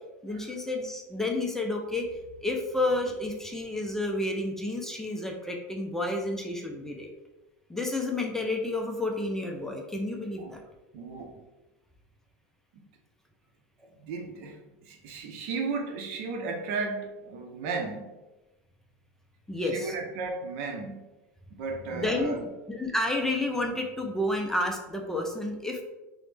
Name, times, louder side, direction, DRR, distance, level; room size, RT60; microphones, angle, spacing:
voice 1, 0.2-2.1 2.4-7.1 7.7-10.6 19.5-20.0 21.9-22.4 22.7-25.8, left 2 dB, 5° left, 1 dB, 0.4 m, -30 dB
voice 2, 10.9-11.3 12.7-12.8 14.0-14.6 14.8-18.1 19.6-21.1 21.5-22.5, right 4 dB, 65° right, 3 dB, 0.6 m, -34 dB
3.0 x 2.0 x 3.2 m, 1.1 s
supercardioid pair, 120°, 8 cm